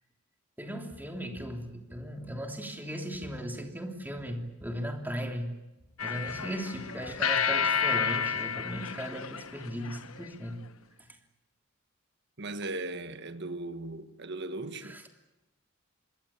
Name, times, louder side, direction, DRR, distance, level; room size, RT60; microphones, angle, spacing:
voice 1, 0.6-5.5 6.0-10.6 14.9-15.0, equal, 10° right, 3.2 m, -37 dB
sound 1, 6.0-10.3, left 7 dB, 80° left, 1.1 m, -31 dB
voice 2, 12.4-15.0, right 2 dB, 55° right, 1.6 m, -38 dB
26.0 x 21.5 x 8.6 m
head